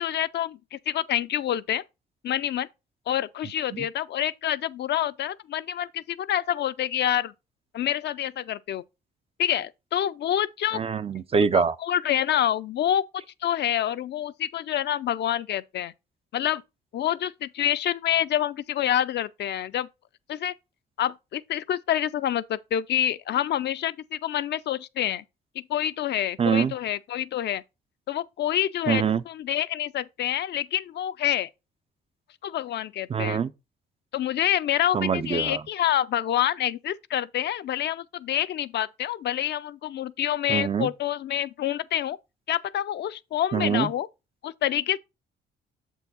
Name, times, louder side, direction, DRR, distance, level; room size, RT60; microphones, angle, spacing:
voice 1, 0.0-1.8 2.2-2.7 3.1-7.3 7.7-8.8 9.4-10.8 11.5-13.0 13.4-15.9 16.3-16.6 16.9-19.9 20.3-20.5 21.0-25.2 25.6-27.6 28.1-31.5 32.4-33.4 34.1-42.2 42.5-44.1 44.4-45.0, left 11 dB, 60° left, 0.4 m, -27 dB
voice 2, 10.7-11.8 26.4-26.7 28.9-29.2 33.1-33.5 34.9-35.6 40.5-40.9 43.5-43.9, right 6 dB, 30° right, 0.4 m, -24 dB
7.0 x 4.6 x 4.1 m
cardioid pair, 90°, 20 cm